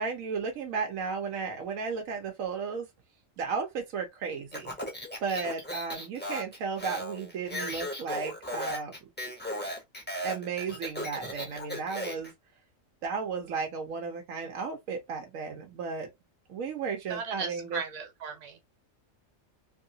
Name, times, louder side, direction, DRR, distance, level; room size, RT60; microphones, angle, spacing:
voice 1, 0.0-2.9 3.4-4.7 5.2-8.9 10.2-12.3 13.0-16.1 16.5-17.8, right 5 dB, 90° right, 1.1 m, -34 dB
Speech, 4.5-12.3, equal, 10° left, 0.6 m, -36 dB
voice 2, 17.1-18.6, right 6 dB, 70° right, 1.3 m, -37 dB
3.0 x 2.7 x 2.6 m
omnidirectional pair, 1.4 m